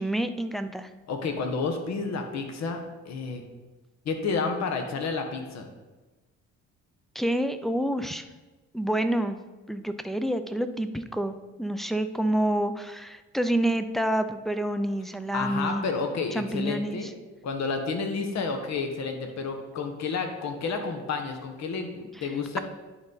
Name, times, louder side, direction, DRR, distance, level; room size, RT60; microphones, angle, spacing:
voice 1, 0.0-0.9 7.1-8.3 8.7-9.4 9.7-15.8 16.3-17.0 22.2-22.3, right 1 dB, ahead, 8 dB, 0.4 m, -28 dB
voice 2, 1.1-3.4 4.0-5.7 15.3-17.1 17.4-22.6, left 4 dB, 65° left, 5 dB, 1.1 m, -30 dB
10.0 x 3.9 x 4.0 m, 1.2 s
cardioid pair, 90°, 30 cm